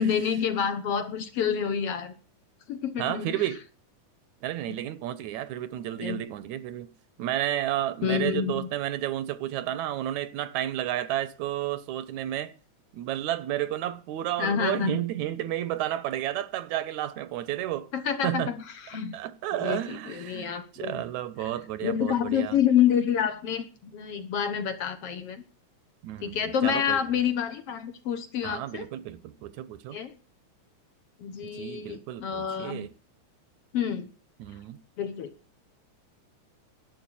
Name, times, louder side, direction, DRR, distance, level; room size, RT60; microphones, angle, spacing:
voice 1, 0.0-2.1 2.7-3.3 4.7-4.8 6.0-6.2 8.0-8.7 14.4-15.0 17.9-18.6 18.9-19.2 19.6-21.0 21.8-25.4 26.2-28.9 29.9-30.1 31.2-32.9 33.7-34.1 35.0-35.3, left 8 dB, 60° left, 1.9 m, -28 dB
voice 2, 3.0-3.6 4.4-6.9 7.2-12.5 12.9-17.9 18.2-18.5 19.1-22.6 26.0-27.0 28.4-30.0 31.4-32.9 34.4-34.8, right 13 dB, 75° right, 2.1 m, -32 dB
11.5 x 8.4 x 8.9 m
omnidirectional pair, 3.5 m